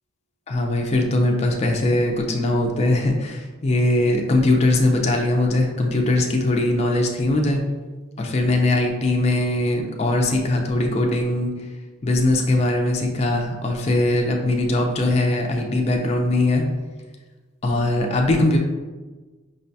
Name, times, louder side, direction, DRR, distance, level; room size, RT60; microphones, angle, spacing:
voice 1, 0.5-7.6 8.2-11.5 12.0-16.6 17.6-18.6, left 2 dB, 30° left, 1 dB, 0.3 m, -20 dB
5.2 x 2.2 x 2.6 m, 1.3 s
head